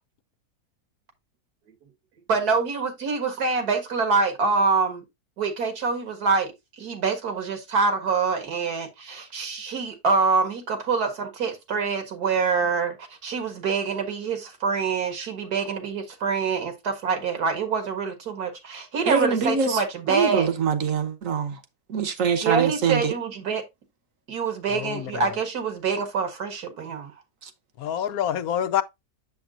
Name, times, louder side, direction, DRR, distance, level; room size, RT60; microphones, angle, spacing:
voice 1, 2.3-5.0 5.4-6.5 6.8-20.5 22.4-23.6 24.3-27.1, right 4 dB, 75° right, 2.1 m, -25 dB
voice 2, 19.1-19.8 20.1-21.5 21.9-23.1, right 6 dB, 60° right, 1.3 m, -24 dB
voice 3, 24.7-25.4 27.8-28.8, left 9 dB, 75° left, 1.0 m, -27 dB
7.1 x 7.0 x 2.4 m
omnidirectional pair, 1.6 m